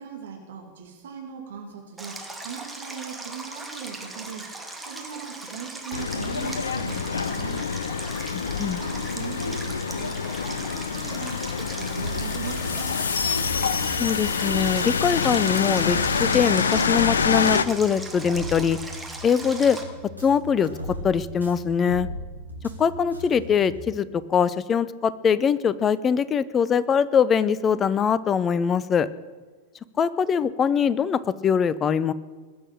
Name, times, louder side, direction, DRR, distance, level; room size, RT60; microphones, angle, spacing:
voice 1, 0.0-4.5 4.9-7.7 8.7-12.9, right 7 dB, 60° right, 2 dB, 2.6 m, -39 dB
Stream, 2.0-19.8, right 2 dB, 5° right, 2.4 m, -39 dB
sound 1, 5.9-17.7, left 6 dB, 70° left, 0.7 m, -26 dB
voice 2, 8.3-8.8 14.0-18.8 19.2-19.8 20.2-20.7 21.0-22.1 22.8-29.1 30.0-32.1, left 7 dB, 25° left, 17 dB, 0.7 m, -22 dB
sound 2, 12.0-23.8, equal, 90° right, 2.5 m, -37 dB
20.0 x 7.8 x 8.8 m, 1.4 s
figure-of-eight pair, 90°, 0 cm